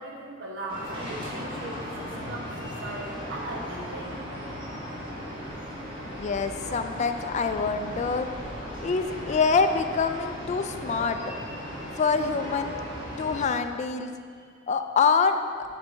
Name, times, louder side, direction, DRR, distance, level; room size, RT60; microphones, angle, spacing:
voice 1, 0.0-4.2, right 1 dB, 70° right, -1 dB, 1.1 m, -38 dB
sound 1, 0.7-13.4, equal, 25° right, 1.6 m, -37 dB
voice 2, 6.0-8.3 8.8-11.3 12.0-12.8 13.2-14.1 14.7-15.4, left 5 dB, 35° left, 8 dB, 0.3 m, -25 dB
6.9 x 4.0 x 4.4 m, 2.1 s
head